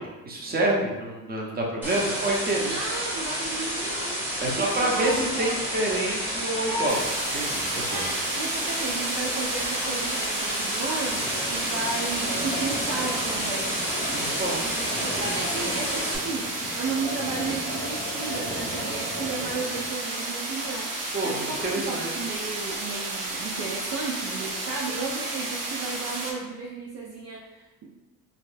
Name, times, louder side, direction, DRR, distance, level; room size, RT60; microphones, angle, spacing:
voice 1, 0.0-2.7 4.4-7.0 7.3-8.0 14.1-14.6 15.0-15.2 21.1-22.1, right 1 dB, 25° right, -2 dB, 0.9 m, -28 dB
sound 1, 1.8-16.2, equal, 5° right, 1.1 m, -30 dB
voice 2, 2.6-5.6 6.7-7.0 7.9-13.7 14.6-27.9, right 3 dB, 45° right, -2 dB, 0.5 m, -34 dB
sound 2, 6.9-26.3, right 2 dB, 70° right, 0.9 m, -32 dB
sound 3, 11.1-19.9, left 1 dB, 20° left, 0.6 m, -37 dB
3.8 x 2.3 x 2.6 m, 1.1 s
cardioid pair, 90°, 35 cm